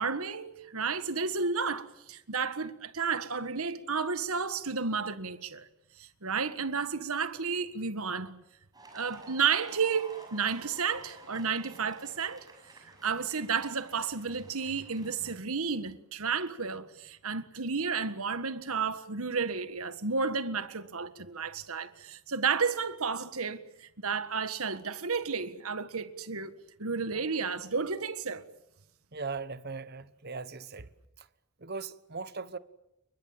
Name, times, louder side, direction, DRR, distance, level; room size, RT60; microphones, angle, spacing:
voice 1, 0.0-5.7 6.0-8.4 8.9-12.5 12.8-28.5, right 5 dB, 75° right, 1.7 m, -32 dB
sound 1, 8.7-15.3, right 2 dB, 15° right, 6.3 m, -52 dB
voice 2, 29.1-30.9 31.6-32.6, right 4 dB, 45° right, 1.2 m, -39 dB
29.5 x 23.0 x 7.6 m
head